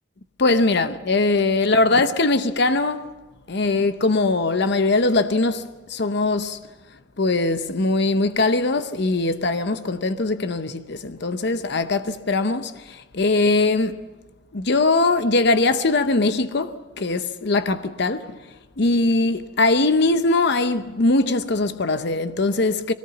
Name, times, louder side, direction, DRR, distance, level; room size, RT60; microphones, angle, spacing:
voice 1, 0.4-3.1 3.5-6.6 7.2-14.1 14.5-18.4 18.8-22.9, left 2 dB, 55° left, 0.7 m, -21 dB
21.5 x 18.5 x 7.0 m
head